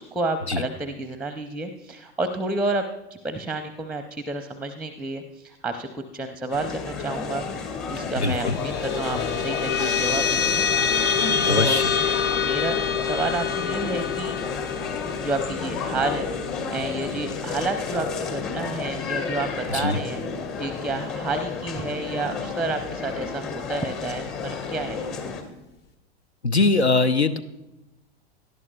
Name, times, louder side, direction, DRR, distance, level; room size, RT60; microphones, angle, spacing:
voice 1, 0.0-2.8 3.1-10.6 11.2-11.9 12.4-14.4 15.2-25.0, right 2 dB, 5° right, 8 dB, 0.6 m, -30 dB
sound 1, 6.5-25.4, left 5 dB, 40° left, 2.2 m, -32 dB
sound 2, 8.0-18.8, left 6 dB, 65° left, 1.2 m, -27 dB
voice 2, 8.2-8.6 11.5-11.8 19.7-20.0 26.4-27.4, left 3 dB, 85° left, 14 dB, 0.7 m, -21 dB
18.0 x 12.0 x 2.3 m, 0.95 s
figure-of-eight pair, 85°, 32 cm